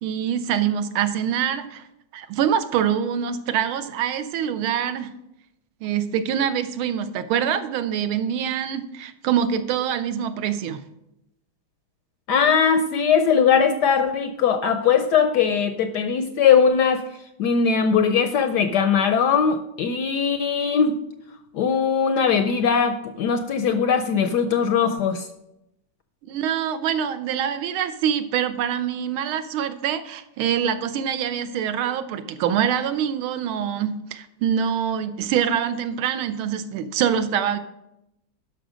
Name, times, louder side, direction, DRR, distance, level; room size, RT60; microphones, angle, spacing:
voice 1, 0.0-1.9 2.1-5.1 5.8-10.8 26.2-37.6, right 9 dB, 85° right, 11 dB, 1.6 m, -25 dB
voice 2, 12.3-17.0 17.4-21.0 21.5-25.3, left 6 dB, 75° left, 9 dB, 1.0 m, -20 dB
11.5 x 5.7 x 5.0 m, 0.86 s
omnidirectional pair, 2.3 m